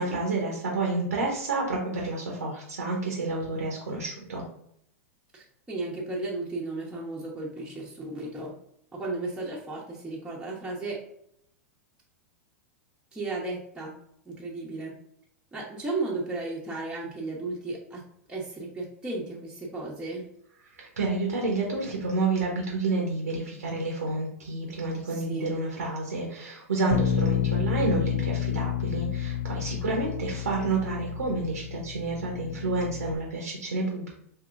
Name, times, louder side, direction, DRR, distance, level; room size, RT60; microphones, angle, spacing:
voice 1, 0.0-4.4 20.8-34.1, right 3 dB, 85° right, -1 dB, 1.0 m, -29 dB
voice 2, 5.3-8.5 8.9-11.0 13.1-14.0 14.2-14.9 15.5-18.0 18.3-20.2 25.0-25.6, right 2 dB, 10° right, -5 dB, 1.0 m, -34 dB
Bass guitar, 26.9-33.2, left 10 dB, 55° left, 0.3 m, -30 dB
4.7 x 2.9 x 2.5 m, 0.71 s
hypercardioid pair, 100°, 8 cm